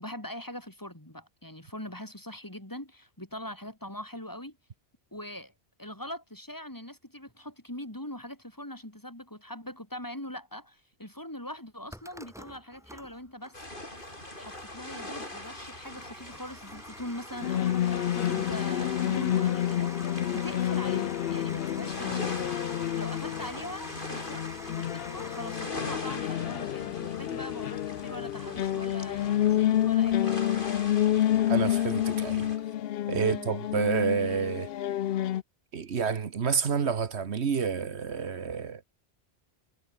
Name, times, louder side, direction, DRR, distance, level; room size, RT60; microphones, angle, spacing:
voice 1, 0.0-4.6 5.1-5.5 5.8-13.6 14.3-22.3 22.9-30.4 33.2-33.5, left 1 dB, 15° left, 3.3 m, -42 dB
sound 1, 11.9-25.7, equal, 5° right, 3.4 m, -47 dB
sound 2, 13.5-32.6, left 1 dB, 50° left, 7.1 m, -42 dB
sound 3, 17.4-35.4, left 12 dB, 65° left, 0.8 m, -29 dB
voice 2, 31.5-32.5 33.1-34.7 35.7-38.8, right 6 dB, 75° right, 1.5 m, -29 dB
omnidirectional pair, 1.1 m